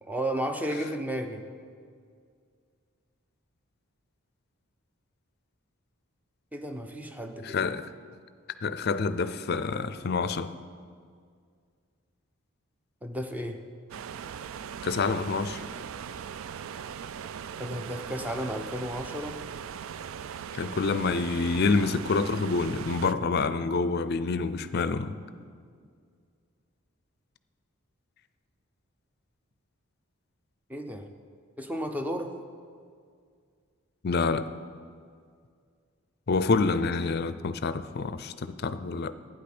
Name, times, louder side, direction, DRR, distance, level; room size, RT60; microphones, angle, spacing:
voice 1, 0.0-1.4 6.5-7.8 13.0-13.6 17.6-19.4 30.7-31.1 31.6-32.3, equal, 10° right, 0.7 m, -33 dB
voice 2, 7.4-7.8 8.6-10.5 14.8-15.6 20.6-25.2 34.0-34.5 36.3-39.1, left 4 dB, 50° left, 0.5 m, -27 dB
sound 1, 13.9-23.1, right 8 dB, 70° right, 0.3 m, -39 dB
12.0 x 9.2 x 6.1 m
head